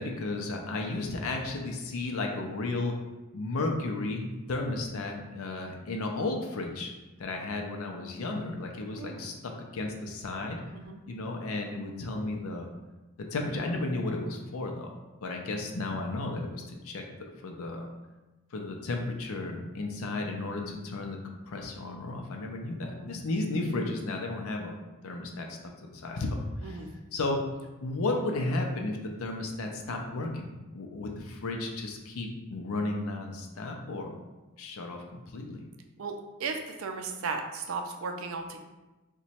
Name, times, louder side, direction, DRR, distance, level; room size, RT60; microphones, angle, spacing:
voice 1, 0.0-3.0 3.3-6.9 7.2-10.6 11.1-12.7 13.2-17.9 18.5-21.2 21.5-25.6 25.9-26.8 27.1-27.4 27.8-34.2 34.6-35.6, left 2 dB, 70° left, 2 dB, 0.5 m, -33 dB
voice 2, 9.0-9.3 10.7-11.0 22.8-23.1 26.6-26.9 36.0-38.6, right 4 dB, 65° right, 5 dB, 0.4 m, -36 dB
2.9 x 2.2 x 4.1 m, 1.1 s
head